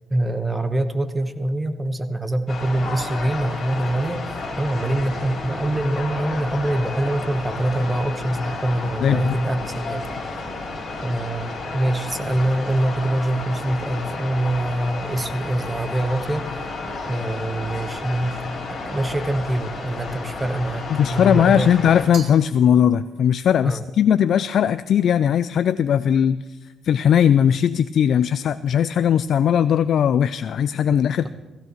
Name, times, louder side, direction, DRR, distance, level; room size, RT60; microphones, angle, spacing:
voice 1, 0.1-10.1 11.0-11.5 11.7-16.5 17.1-18.4 18.7-21.7 23.6-23.8, right 1 dB, 15° right, 8 dB, 1.1 m, -24 dB
sound 1, 2.5-22.0, left 3 dB, 40° left, 4.4 m, -32 dB
voice 2, 9.0-9.3 20.9-26.6 26.8-31.3, left 9 dB, 65° left, 14 dB, 0.3 m, -18 dB
Glass, 22.1-23.4, right 6 dB, 60° right, 1.1 m, -41 dB
16.5 x 15.5 x 3.1 m, 1.2 s
cardioid pair, 90°, 0 cm